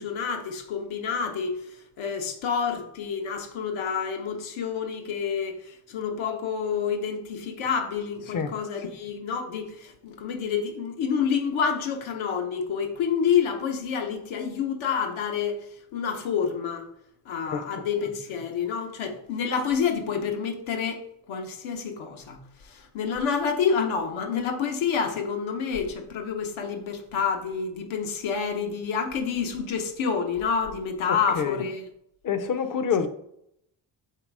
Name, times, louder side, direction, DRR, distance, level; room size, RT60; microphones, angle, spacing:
voice 1, 0.0-1.7 2.0-15.7 15.9-16.9 17.3-31.8, left 6 dB, 85° left, 0.9 m, -28 dB
voice 2, 31.1-31.6 32.2-33.1, left 6 dB, 45° left, 0.6 m, -27 dB
4.0 x 2.9 x 4.6 m
cardioid pair, 95°, 46 cm